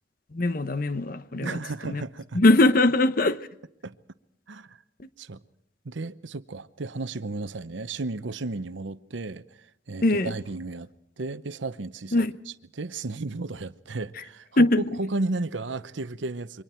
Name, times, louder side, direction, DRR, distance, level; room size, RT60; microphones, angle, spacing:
voice 1, 0.3-1.6 1.8-2.0 2.3-3.5 10.0-10.3 12.1-12.3 14.6-14.8, left 2 dB, 50° left, 0.9 m, -21 dB
voice 2, 1.4-2.4 3.8-3.9 4.5-4.8 5.2-5.4 5.8-10.9 11.2-16.6, right 3 dB, 80° right, 0.8 m, -34 dB
28.0 x 24.0 x 4.4 m
head